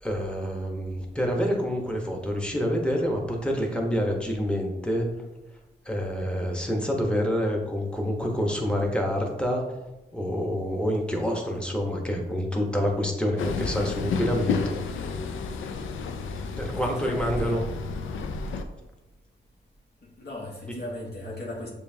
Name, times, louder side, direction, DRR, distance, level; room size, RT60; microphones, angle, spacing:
voice 1, 0.0-5.1 5.8-9.7 10.1-15.1 16.6-17.6, equal, 5° left, 0 dB, 1.1 m, -27 dB
Train, 13.4-18.6, left 4 dB, 85° left, 0.4 m, -31 dB
voice 2, 16.8-17.6 20.2-21.7, left 1 dB, 55° left, -5 dB, 1.3 m, -36 dB
6.8 x 2.6 x 2.8 m, 1.0 s
cardioid pair, 65°, 20 cm